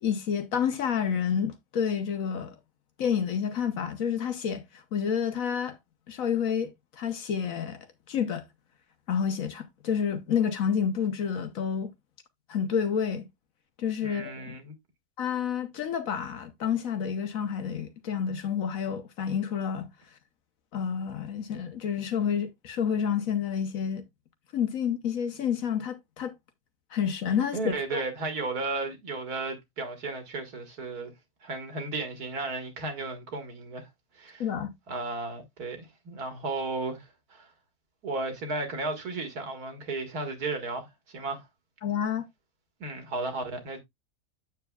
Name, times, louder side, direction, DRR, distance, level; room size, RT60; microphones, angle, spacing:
voice 1, 0.0-2.5 3.0-4.6 4.9-5.8 6.1-8.4 9.1-11.9 12.5-13.3 13.8-14.6 15.2-19.9 20.7-24.0 24.5-26.3 26.9-28.0 34.4-34.7 41.8-42.2, left 7 dB, 60° left, 1.3 m, -29 dB
voice 2, 14.0-14.7 27.5-31.1 31.4-33.9 34.1-34.5 34.9-37.5 38.0-41.5 42.8-43.8, right 3 dB, 70° right, 2.1 m, -34 dB
8.2 x 7.1 x 2.3 m
omnidirectional pair, 1.7 m